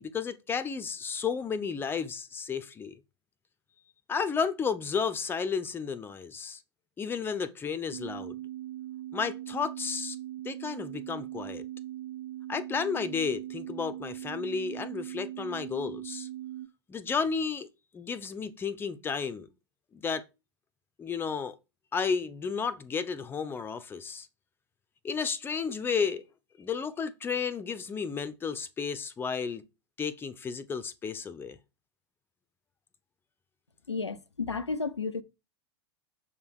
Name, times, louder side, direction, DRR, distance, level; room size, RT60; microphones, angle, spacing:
voice 1, 0.0-2.9 4.1-6.6 7.0-8.4 9.1-10.2 10.4-11.6 12.5-16.3 16.9-17.7 17.9-19.5 19.9-20.2 21.0-21.6 21.9-24.3 25.0-26.2 26.6-29.6 30.0-31.6, left 6 dB, 15° left, 0.7 m, -32 dB
sound 1, 7.9-16.7, right 14 dB, 45° right, 0.7 m, -40 dB
voice 2, 33.9-35.2, left 4 dB, 85° left, 0.6 m, -32 dB
7.2 x 3.5 x 6.3 m
figure-of-eight pair, 90°, 14 cm